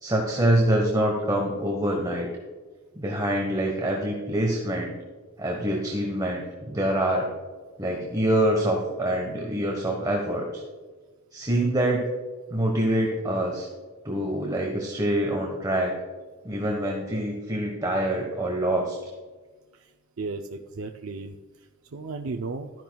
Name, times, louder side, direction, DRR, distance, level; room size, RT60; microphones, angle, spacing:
voice 1, 0.0-2.3 3.0-5.0 5.4-7.3 7.8-10.6 11.3-12.1 12.5-13.7 14.0-15.9 16.4-19.0, right 1 dB, 20° right, 1 dB, 1.2 m, -25 dB
voice 2, 20.2-21.4 21.9-22.7, right 3 dB, 70° right, 3 dB, 0.5 m, -34 dB
12.5 x 10.5 x 2.3 m, 1.3 s
head